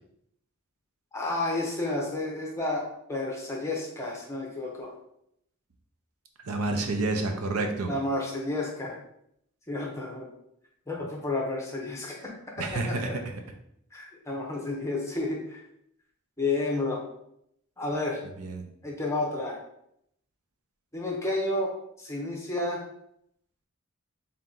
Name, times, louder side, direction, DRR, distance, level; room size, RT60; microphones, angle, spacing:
voice 1, 1.1-4.9 7.9-9.0 9.7-10.3 10.9-12.3 12.7-12.9 13.9-15.6 16.4-17.0 17.8-18.2 18.8-19.6 20.9-21.7 22.0-22.8, left 2 dB, 15° left, -2 dB, 0.7 m, -31 dB
voice 2, 6.4-7.9 12.6-13.1 18.4-18.7, right 2 dB, 80° right, 4 dB, 0.6 m, -29 dB
3.5 x 2.8 x 3.8 m, 0.75 s
head